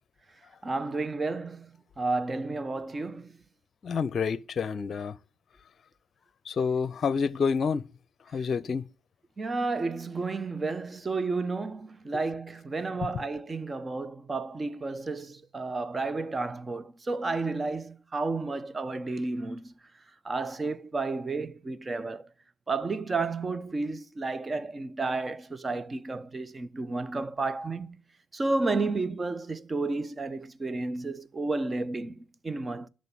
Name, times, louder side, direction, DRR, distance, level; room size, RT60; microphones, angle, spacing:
voice 1, 0.6-3.3 9.4-19.7 20.2-22.2 22.7-28.0 28.3-32.2 32.4-32.9, right 3 dB, 30° right, 0.9 m, -32 dB
voice 2, 3.8-5.1 6.5-7.8 8.3-8.8, left 5 dB, 50° left, 0.7 m, -28 dB
10.5 x 6.6 x 8.4 m
hypercardioid pair, 60°, 0 cm